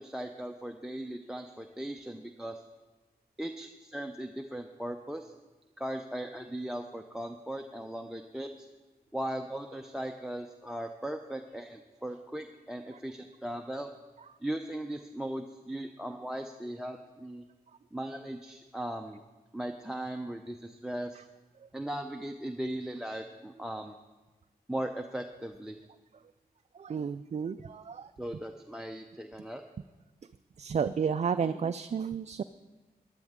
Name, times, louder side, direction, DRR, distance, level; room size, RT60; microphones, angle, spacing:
voice 1, 0.0-2.6 3.4-5.3 5.8-8.7 9.1-13.9 14.4-17.4 17.9-19.2 19.5-21.2 21.7-23.9 24.7-25.8 28.2-29.6, right 1 dB, 5° right, 6 dB, 0.6 m, -38 dB
voice 2, 26.7-28.1 30.6-32.4, right 6 dB, 45° right, 10 dB, 0.4 m, -32 dB
15.5 x 10.5 x 3.7 m, 1.2 s
cardioid pair, 60°, 17 cm